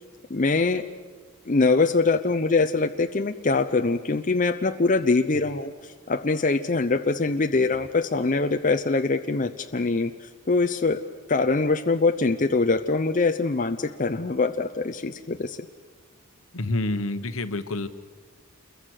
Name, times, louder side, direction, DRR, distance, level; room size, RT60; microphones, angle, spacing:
voice 1, 0.3-0.8 1.5-11.0 11.3-15.6, left 3 dB, 35° left, 6 dB, 0.7 m, -23 dB
voice 2, 16.5-17.9, left 2 dB, 70° left, 10 dB, 1.2 m, -28 dB
28.5 x 22.5 x 6.5 m, 1.5 s
head